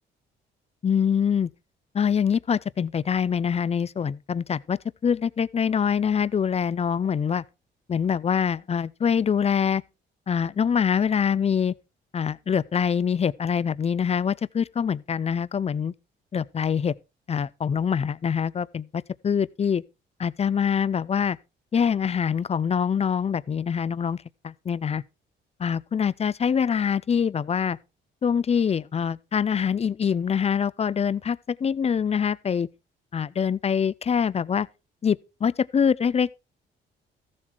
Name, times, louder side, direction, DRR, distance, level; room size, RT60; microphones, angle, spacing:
voice 1, 0.8-1.5 1.9-7.4 7.9-9.8 10.3-11.7 12.1-15.9 16.3-16.9 17.3-19.8 20.2-21.4 21.7-25.0 25.6-27.8 28.2-32.7 33.1-34.7 35.0-36.3, left 7 dB, 30° left, 0.5 m, -24 dB
14.0 x 7.4 x 4.4 m
cardioid pair, 90°, 20 cm